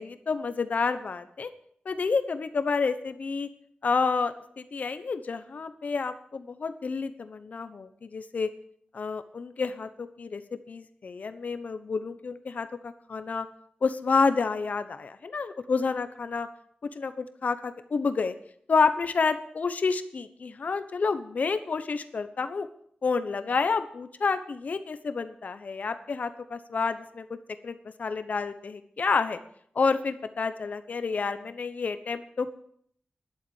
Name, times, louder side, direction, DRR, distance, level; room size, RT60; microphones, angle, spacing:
voice 1, 0.0-1.5 1.8-3.5 3.8-8.5 8.9-10.4 10.7-13.5 13.8-16.5 16.9-18.3 18.7-22.7 23.0-27.3 27.6-29.4 29.7-32.6, left 4 dB, 60° left, 11 dB, 1.0 m, -29 dB
11.5 x 7.5 x 8.7 m, 0.66 s
wide cardioid pair, 120°, 3 cm